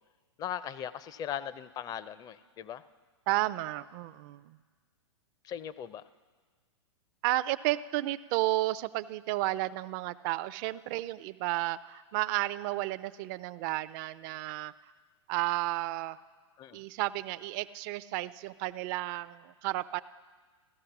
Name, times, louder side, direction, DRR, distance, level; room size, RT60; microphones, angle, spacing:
voice 1, 0.4-2.8 5.4-6.0 16.6-16.8, left 10 dB, 25° left, 15 dB, 0.5 m, -39 dB
voice 2, 3.3-4.6 7.2-14.7 15.3-16.2 16.7-20.0, right 17 dB, 40° right, 14 dB, 0.4 m, -32 dB
15.5 x 13.0 x 5.9 m, 1.5 s
hypercardioid pair, 120°, 15 cm